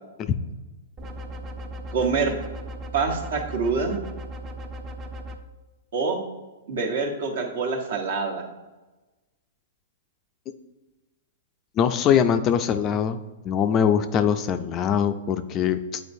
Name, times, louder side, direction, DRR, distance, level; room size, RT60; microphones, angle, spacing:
sound 1, 1.0-5.4, equal, 25° right, 0.5 m, -37 dB
voice 1, 1.9-2.3 2.9-4.0 5.9-6.2 6.7-8.4, right 4 dB, 65° right, 2 dB, 1.1 m, -25 dB
voice 2, 11.8-13.2 13.4-16.0, left 8 dB, 30° left, 10 dB, 0.3 m, -22 dB
8.3 x 4.3 x 2.6 m, 1.1 s
hypercardioid pair, 140°, 0 cm